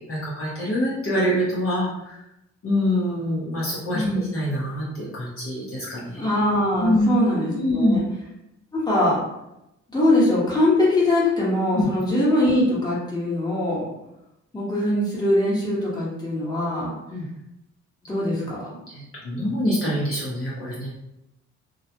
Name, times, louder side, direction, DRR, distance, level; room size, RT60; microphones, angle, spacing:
voice 1, 0.1-2.2 2.6-4.0 4.3-6.3 6.8-7.1 7.5-8.0 11.7-11.9 17.1-17.3 18.9-20.9, equal, 45° left, -6 dB, 0.8 m, -25 dB
voice 2, 3.9-4.3 6.1-8.0 8.7-9.2 9.9-13.9 14.5-17.0 18.1-18.7, left 1 dB, 15° left, -6 dB, 1.1 m, -22 dB
2.3 x 2.1 x 2.8 m, 0.86 s
cardioid pair, 90°, 30 cm